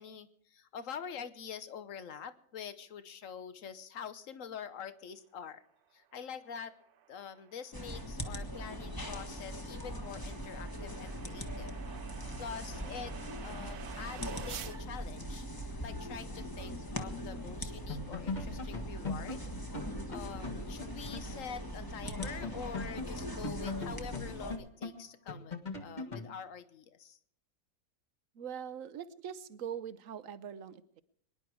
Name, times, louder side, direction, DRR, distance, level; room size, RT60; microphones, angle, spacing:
voice 1, 0.0-5.6 5.9-6.7 7.1-11.7 12.4-15.5 15.8-19.5 20.1-27.2, left 7 dB, 60° left, 13 dB, 1.3 m, -46 dB
sound 1, 6.1-14.8, right 9 dB, 85° right, 1.4 m, -51 dB
sound 2, 7.7-24.6, equal, 15° left, 1.3 m, -41 dB
sound 3, 17.5-17.6 17.9-21.3 21.6-21.7 22.0-26.3, left 3 dB, 30° left, 1.6 m, -41 dB
voice 2, 28.3-31.0, right 8 dB, 65° right, 15 dB, 1.1 m, -42 dB
24.0 x 11.0 x 4.7 m, 0.67 s
omnidirectional pair, 1.6 m